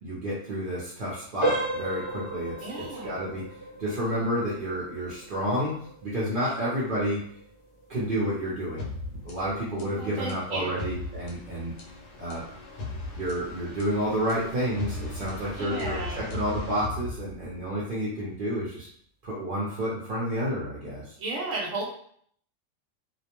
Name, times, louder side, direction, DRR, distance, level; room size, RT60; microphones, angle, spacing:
voice 1, 0.0-3.5 3.8-5.7 6.0-7.2 7.9-11.7 12.2-12.4 13.2-18.9 19.2-21.0, equal, 50° right, -7 dB, 0.7 m, -30 dB
sound 1, 1.4-12.1 12.4-12.7 13.3-13.4 13.9-14.0, right 1 dB, 45° left, 0.3 m, -36 dB
voice 2, 2.6-3.1 10.0-10.8 15.6-16.2 21.2-21.8, right 2 dB, 75° right, -3 dB, 1.0 m, -34 dB
sound 2, 8.8-17.7, left 3 dB, 75° left, 1.0 m, -38 dB
2.4 x 2.1 x 2.9 m, 0.62 s
omnidirectional pair, 1.4 m